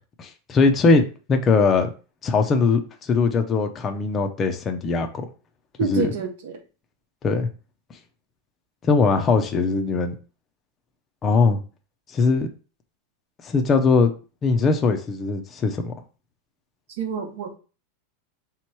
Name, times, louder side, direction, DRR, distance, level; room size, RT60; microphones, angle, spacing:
voice 1, 0.2-1.9 2.2-5.3 5.8-6.1 7.2-7.5 8.8-10.2 11.2-11.6 12.1-12.5 13.4-14.1 14.4-15.9, left 4 dB, 20° left, 5 dB, 0.5 m, -20 dB
voice 2, 5.8-6.6 17.0-17.5, right 7 dB, 70° right, 2 dB, 0.9 m, -28 dB
3.5 x 3.0 x 4.5 m, 0.34 s
supercardioid pair, 165°, 0 cm